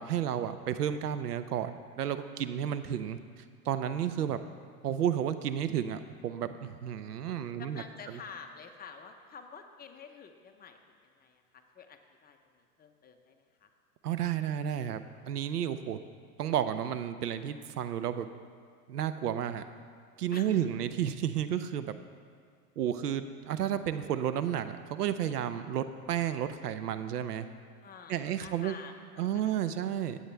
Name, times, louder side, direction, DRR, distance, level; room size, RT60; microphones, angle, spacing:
voice 1, 0.0-3.2 3.6-4.4 4.8-7.8 8.1-8.2 14.0-16.0 16.4-18.3 18.9-19.6 20.2-21.9 22.8-27.5 28.1-28.7 29.2-30.2, right 10 dB, 85° right, 11 dB, 0.7 m, -32 dB
voice 2, 7.6-13.7 20.3-20.6 27.8-29.7, left 6 dB, 20° left, 5 dB, 0.9 m, -49 dB
16.5 x 8.2 x 3.4 m, 2.1 s
hypercardioid pair, 105°, 46 cm